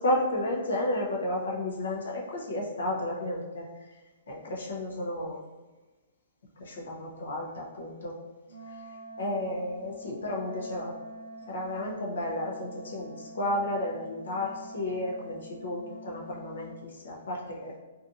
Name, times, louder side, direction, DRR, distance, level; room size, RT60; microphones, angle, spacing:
voice 1, 0.0-3.7 4.3-5.4 6.6-8.1 8.7-8.8 9.2-10.9 11.5-17.8, left 1 dB, 75° left, -2 dB, 0.7 m, -32 dB
Wind instrument woodwind instrument, 8.4-16.9, right 1 dB, 15° left, 0.8 m, -46 dB
2.7 x 2.4 x 2.5 m, 1.2 s
hypercardioid pair, 175°, 0 cm